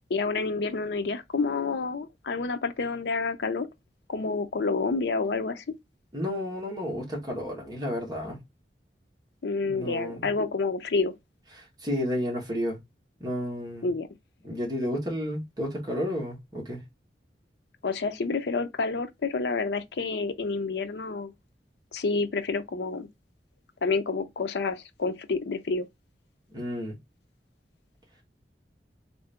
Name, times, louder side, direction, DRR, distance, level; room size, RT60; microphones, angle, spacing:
voice 1, 0.1-3.7 4.1-5.6 9.4-11.1 13.8-14.1 17.8-21.3 21.9-23.1 23.8-25.9, left 4 dB, 75° left, 0.5 m, -29 dB
voice 2, 6.1-8.4 9.7-10.4 11.5-12.8 13.2-13.9 14.4-16.8 26.5-26.9, equal, 25° right, 1.4 m, -32 dB
3.6 x 2.6 x 3.4 m
head